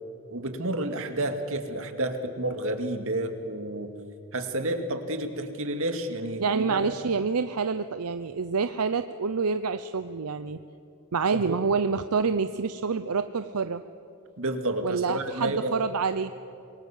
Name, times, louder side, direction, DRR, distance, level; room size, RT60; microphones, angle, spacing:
voice 1, 0.3-3.9 4.3-6.9 11.3-11.6 14.4-15.7, right 1 dB, 65° right, 6 dB, 2.2 m, -30 dB
voice 2, 6.4-10.6 11.1-13.8 14.8-16.3, right 5 dB, 85° right, 11 dB, 0.7 m, -27 dB
26.0 x 22.5 x 7.4 m, 2.6 s
head